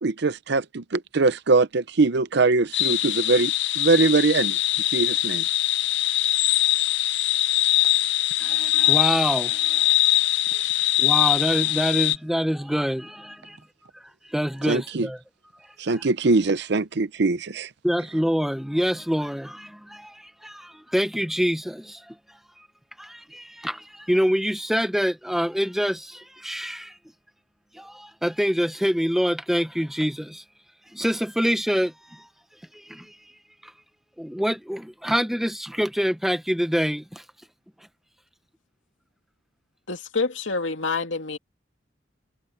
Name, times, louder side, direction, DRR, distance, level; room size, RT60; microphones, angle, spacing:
voice 1, 0.0-4.6 4.9-5.4 14.6-15.1 15.8-17.7, right 3 dB, 65° right, 0.7 m, -22 dB
sound 1, 2.7-12.2, left 16 dB, 70° left, 0.8 m, -22 dB
voice 2, 8.4-9.8 10.5-10.6 11.0-13.6 14.3-15.2 15.9-16.0 17.8-22.1 23.0-27.0 27.7-30.4 30.9-32.3 32.7-33.1 34.2-37.2, equal, ahead, 1.0 m, -26 dB
voice 3, 39.9-41.4, left 4 dB, 85° left, 2.4 m, -27 dB
head